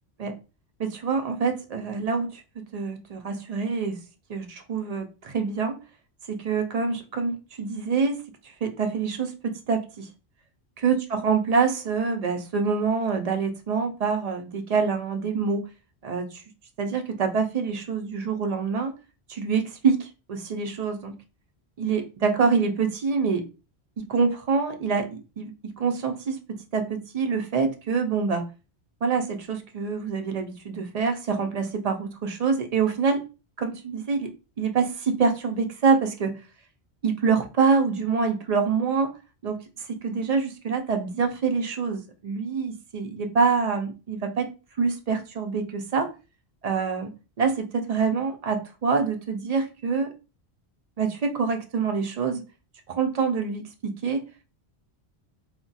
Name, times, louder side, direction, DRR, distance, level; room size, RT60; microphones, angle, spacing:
voice 1, 0.8-2.4 2.7-4.0 4.3-5.8 6.3-8.2 8.6-10.1 10.8-15.6 16.0-16.4 16.8-18.9 19.3-21.1 21.8-23.4 24.0-25.1 25.4-28.5 29.0-33.2 33.6-34.3 34.6-36.3 37.0-39.1 39.4-44.5 44.8-46.1 46.6-47.1 47.4-50.1 51.0-52.4 52.9-54.2, right 5 dB, 55° right, 5 dB, 0.4 m, -26 dB
2.3 x 2.2 x 3.9 m, 0.31 s
omnidirectional pair, 1.1 m